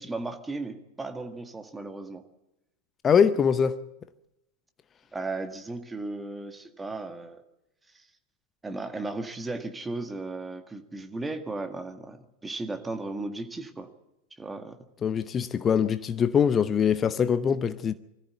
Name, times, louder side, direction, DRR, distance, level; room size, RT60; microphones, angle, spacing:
voice 1, 0.0-2.2 5.1-7.4 7.9-8.1 8.6-13.9 14.4-14.8, right 2 dB, 10° right, 1.8 m, -35 dB
voice 2, 3.0-3.8 15.0-17.9, left 7 dB, 25° left, 0.7 m, -23 dB
22.0 x 14.5 x 8.2 m
figure-of-eight pair, 90°, 0 cm